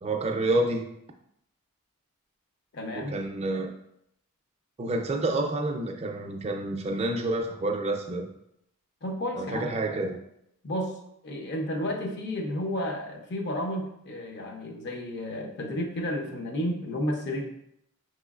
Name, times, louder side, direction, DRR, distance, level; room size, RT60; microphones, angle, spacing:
voice 1, 0.0-0.9 3.0-3.7 4.8-8.3 9.3-10.2, right 2 dB, 30° right, 3 dB, 0.4 m, -28 dB
voice 2, 2.7-3.2 9.0-9.7 10.6-11.0 11.2-17.5, left 1 dB, 50° left, 3 dB, 0.6 m, -32 dB
6.0 x 3.0 x 2.3 m, 0.78 s
head